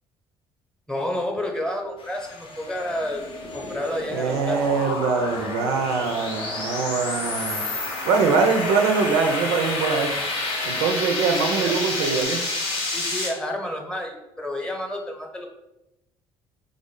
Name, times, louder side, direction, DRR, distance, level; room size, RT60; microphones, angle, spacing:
voice 1, 0.9-3.2 3.5-4.6 11.2-11.8 12.9-15.5, left 1 dB, 5° left, 2 dB, 0.8 m, -30 dB
sound 1, 2.0-12.2, left 2 dB, 50° left, 0.7 m, -41 dB
sound 2, 2.7-13.3, left 2 dB, 80° left, 0.9 m, -29 dB
voice 2, 4.1-7.7 8.0-10.2 10.6-12.4, right 5 dB, 75° right, 5 dB, 0.4 m, -23 dB
3.4 x 2.1 x 3.6 m, 0.93 s
hypercardioid pair, 65°, 12 cm